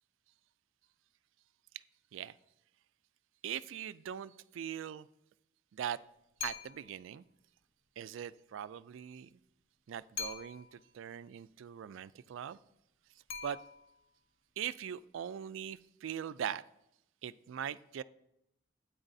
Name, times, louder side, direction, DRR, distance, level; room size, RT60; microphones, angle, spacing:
voice 1, 3.4-5.1 5.7-6.0 6.4-7.2 8.0-9.3 9.9-12.6 13.4-13.6 14.6-16.6 17.2-18.0, right 9 dB, 70° right, 17 dB, 0.3 m, -41 dB
sound 1, 6.4-7.0 10.2-10.9 13.3-14.1, left 5 dB, 60° left, 1.0 m, -43 dB
12.5 x 8.9 x 2.7 m, 0.81 s
head